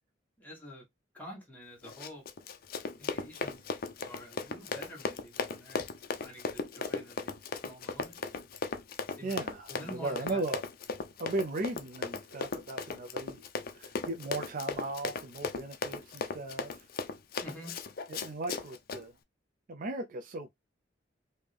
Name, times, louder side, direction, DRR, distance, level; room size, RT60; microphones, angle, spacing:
voice 1, 0.4-0.8 1.1-2.2 3.0-3.6 4.0-7.3 7.6-8.2 9.2-9.4 9.7-10.4 17.4-17.7, equal, 10° left, 1.5 m, -48 dB
Run, 1.8-19.0, left 4 dB, 50° left, 0.5 m, -37 dB
voice 2, 9.2-10.6 11.2-13.4 13.7-16.9 18.1-19.1 19.7-20.5, right 2 dB, 45° right, 0.5 m, -37 dB
3.5 x 2.7 x 3.3 m
head